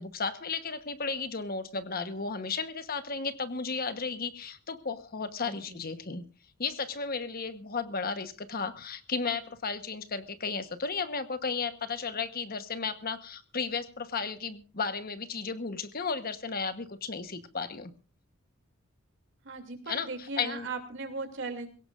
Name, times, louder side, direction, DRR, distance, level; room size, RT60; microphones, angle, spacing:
voice 1, 0.0-6.2 6.6-17.9 19.9-20.7, left 5 dB, 45° left, 10 dB, 1.2 m, -34 dB
voice 2, 5.4-5.8 19.4-21.7, right 3 dB, 60° right, 6 dB, 2.8 m, -38 dB
22.0 x 17.5 x 2.6 m, 0.34 s
head